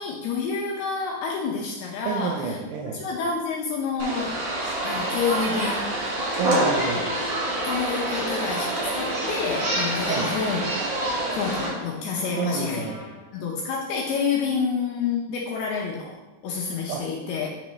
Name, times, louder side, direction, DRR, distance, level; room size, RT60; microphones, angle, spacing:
voice 1, 0.0-2.6 2.9-4.4 4.8-5.9 7.6-10.7 11.3-12.8 13.3-16.2 16.4-17.5, left 5 dB, 80° left, -3 dB, 2.3 m, -28 dB
voice 2, 2.1-3.0 6.4-7.1 10.1-10.3 12.4-13.1 16.9-17.0, right 5 dB, 80° right, 0 dB, 2.4 m, -29 dB
sound 1, 4.0-11.7, right 1 dB, 60° right, 1.7 m, -27 dB
sound 2, 5.9-7.7 8.7-10.5 11.1-13.4, left 3 dB, 60° left, 2.3 m, -40 dB
10.5 x 3.6 x 3.1 m, 1.1 s
omnidirectional pair, 5.1 m